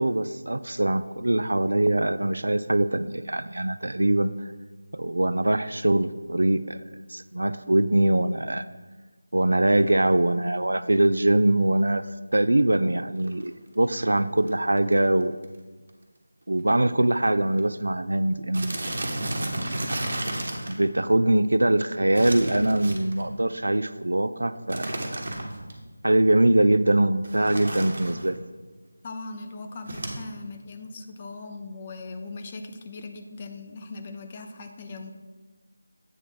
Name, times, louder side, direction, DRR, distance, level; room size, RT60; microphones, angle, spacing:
voice 1, 0.0-4.5 4.9-6.8 7.1-8.6 9.3-12.1 12.3-15.3 16.5-18.9 20.7-25.2 26.0-28.4, right 1 dB, 70° right, 13 dB, 0.3 m, -23 dB
sound 1, 13.2-13.5 14.2-14.3 14.5-14.6 14.8-15.1 15.4-15.6 15.9-16.0 16.7-16.8 17.0-17.3 17.6-17.7 18.5-20.8 22.1-23.3 24.7-25.7 27.2-28.3 29.9-30.2, right 1 dB, 55° right, 1.3 m, -32 dB
voice 2, 29.0-35.1, left 3 dB, 25° left, 5 dB, 0.6 m, -39 dB
8.3 x 3.5 x 5.9 m, 1.3 s
figure-of-eight pair, 165°, 0 cm